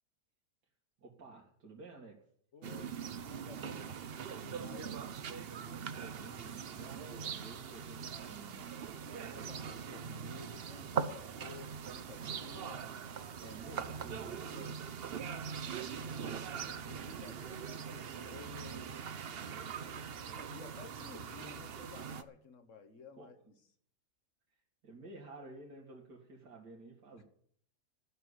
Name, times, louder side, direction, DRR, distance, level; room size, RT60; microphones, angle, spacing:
voice 1, 1.0-2.2 5.8-8.7 13.4-14.9 23.1-23.3 24.5-24.6 24.8-27.2, right 2 dB, 85° right, -2 dB, 2.7 m, -52 dB
voice 2, 2.5-5.0 9.1-12.9 15.0-19.1 19.8-23.6, left 6 dB, 50° left, 7 dB, 1.6 m, -55 dB
sound 1, 2.6-22.2, right 7 dB, 50° right, 0.8 m, -42 dB
13.0 x 6.8 x 9.7 m, 0.62 s
omnidirectional pair, 1.7 m